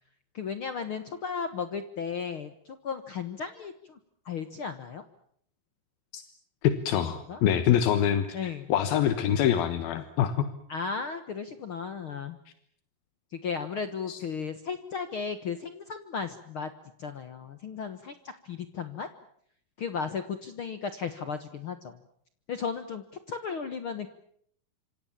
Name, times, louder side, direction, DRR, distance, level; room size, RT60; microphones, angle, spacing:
voice 1, 0.3-4.0 4.2-5.0 6.9-7.4 8.3-8.7 10.7-12.4 13.3-16.7 17.0-19.1 19.8-22.0 22.5-24.1, left 6 dB, 60° left, 10 dB, 1.4 m, -35 dB
voice 2, 6.6-10.5 14.1-14.2, left 9 dB, 80° left, 10 dB, 3.1 m, -25 dB
26.5 x 26.0 x 7.3 m, 0.65 s
omnidirectional pair, 4.2 m